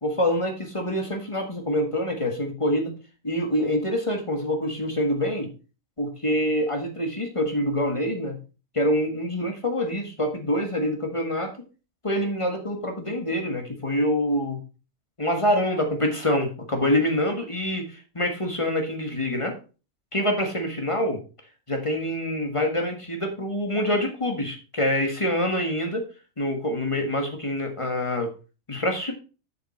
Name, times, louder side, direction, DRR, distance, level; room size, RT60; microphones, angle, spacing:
voice 1, 0.0-2.9 3.2-5.5 6.0-8.4 8.7-11.5 12.0-14.6 15.2-19.5 20.1-21.2 21.7-26.0 26.4-28.3 28.7-29.1, left 1 dB, 25° left, 3 dB, 1.7 m, -26 dB
7.7 x 6.4 x 4.3 m, 0.33 s
omnidirectional pair, 1.2 m